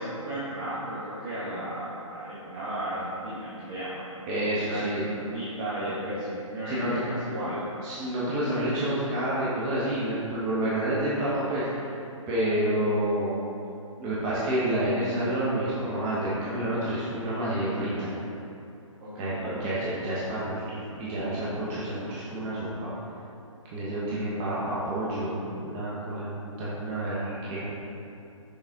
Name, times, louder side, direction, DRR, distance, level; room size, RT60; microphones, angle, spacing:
voice 1, 0.0-4.1 4.7-7.6 19.0-19.3 23.9-24.4, right 1 dB, 40° right, -10 dB, 1.5 m, -34 dB
voice 2, 4.3-5.0 6.7-6.9 7.8-11.9 12.3-13.4 14.0-18.1 19.2-22.9 23.7-27.7, right 1 dB, 25° right, -9 dB, 1.1 m, -29 dB
6.5 x 4.1 x 3.7 m, 2.6 s
figure-of-eight pair, 140°, 17 cm